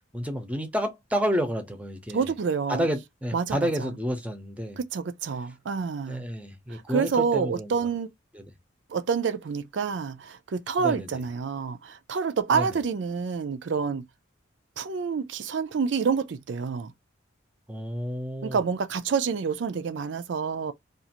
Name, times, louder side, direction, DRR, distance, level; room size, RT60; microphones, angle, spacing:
voice 1, 0.1-2.3 2.7-4.8 6.1-7.7 8.3-8.4 10.8-11.2 12.5-12.8 17.7-18.6, equal, 5° right, 0.6 m, -30 dB
voice 2, 2.1-2.9 3.3-3.9 4.8-6.2 6.7-8.1 8.9-14.0 14.8-16.9 18.4-20.7, right 5 dB, 70° right, 0.4 m, -28 dB
2.5 x 2.4 x 2.8 m
head